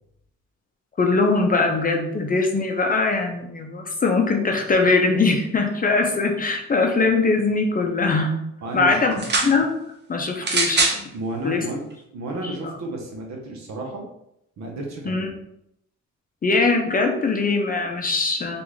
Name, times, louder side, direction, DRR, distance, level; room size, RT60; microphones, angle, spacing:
voice 1, 1.0-8.3 8.7-9.7 10.1-11.0 11.4-11.7 15.1-15.3 16.4-18.6, left 3 dB, 30° left, 3 dB, 0.6 m, -21 dB
voice 2, 8.6-9.1 11.1-11.9 12.1-14.0 14.6-15.3, right 2 dB, 65° right, 1 dB, 1.0 m, -32 dB
sound 1, 9.1-9.5 10.4-11.0 11.9-12.0, right 3 dB, 35° right, 0.7 m, -22 dB
3.5 x 2.5 x 3.1 m, 0.77 s
cardioid pair, 90°, 30 cm